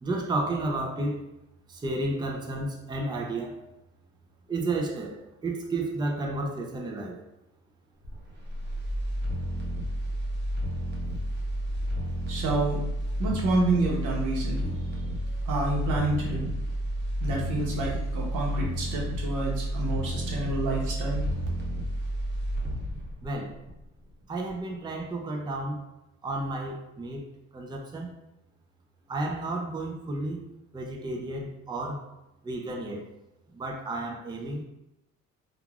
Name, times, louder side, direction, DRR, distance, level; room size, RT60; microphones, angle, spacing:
voice 1, 0.0-1.2 1.7-3.6 4.5-7.2 23.2-23.5 24.3-25.9 26.2-27.2 27.5-28.1 29.1-30.4 30.7-32.0 32.4-33.1 33.5-34.6, right 2 dB, 15° right, 1 dB, 0.4 m, -32 dB
sound 1, 8.0-24.1 24.5-24.6, equal, 35° right, 0.8 m, -31 dB
voice 2, 12.3-12.8 13.2-14.7 15.5-16.5 17.2-21.2, right 2 dB, 85° right, -3 dB, 0.9 m, -28 dB
3.0 x 2.4 x 2.3 m, 0.92 s
cardioid pair, 90°, 30 cm